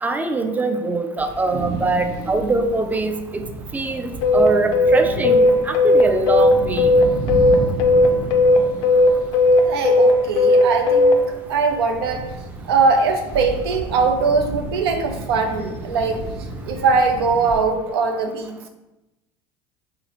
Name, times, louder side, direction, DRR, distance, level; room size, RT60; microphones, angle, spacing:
voice 1, 0.0-3.4 3.7-6.9, right 3 dB, 15° right, 7 dB, 0.3 m, -23 dB
sound 1, 1.2-17.6, right 2 dB, 75° right, 0.8 m, -32 dB
sound 2, 4.2-11.2, left 2 dB, 75° left, 0.4 m, -15 dB
voice 2, 9.7-11.2 11.5-12.3 12.7-16.3 16.6-18.7, right 4 dB, 90° right, 4 dB, 0.4 m, -21 dB
3.1 x 2.7 x 2.8 m, 1.0 s
hypercardioid pair, 90°, 13 cm